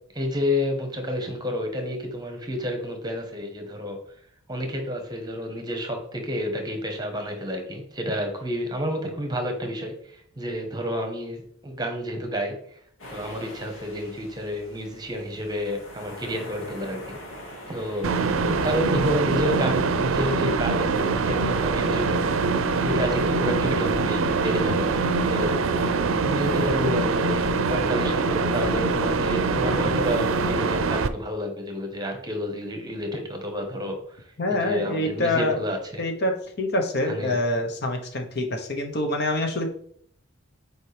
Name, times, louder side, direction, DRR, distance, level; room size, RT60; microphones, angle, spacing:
voice 1, 0.1-4.0 4.5-12.8 13.1-17.2 17.7-18.1 18.4-22.4 22.8-25.9 26.2-36.0 37.0-37.4, equal, 20° right, 4 dB, 1.1 m, -30 dB
sound 1, 13.0-18.9, equal, 80° left, 2.0 m, -43 dB
sound 2, 18.0-31.1, right 4 dB, 80° right, 0.5 m, -24 dB
voice 2, 34.4-35.6 36.0-39.7, left 1 dB, 55° left, 4 dB, 1.0 m, -26 dB
7.4 x 4.7 x 3.4 m, 0.64 s
head